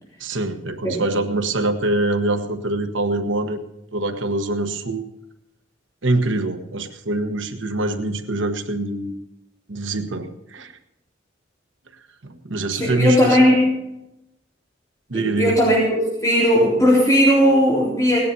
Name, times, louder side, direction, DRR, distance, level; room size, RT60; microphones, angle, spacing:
voice 1, 0.2-3.6 3.9-5.1 6.0-9.2 9.7-10.7 12.2-13.4 15.1-15.6, right 2 dB, 85° right, 7 dB, 1.3 m, -24 dB
voice 2, 12.7-13.7 15.1-15.8 16.2-18.2, equal, 15° left, -6 dB, 3.9 m, -17 dB
18.0 x 10.5 x 5.5 m, 0.88 s
head